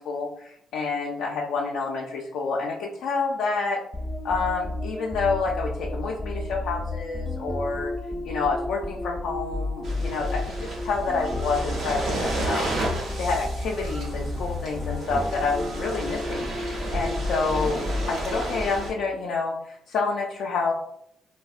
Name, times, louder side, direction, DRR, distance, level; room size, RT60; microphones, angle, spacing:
voice 1, 0.0-3.8 4.2-7.9 8.2-12.7 13.2-17.8 18.1-20.7, left 4 dB, 80° left, -2 dB, 0.3 m, -28 dB
sound 1, 3.9-19.1, left 2 dB, 5° left, 0.4 m, -32 dB
sound 2, 9.8-18.9, right 2 dB, 75° right, 0.7 m, -32 dB
3.3 x 2.1 x 2.4 m, 0.76 s
cardioid pair, 90°, 0 cm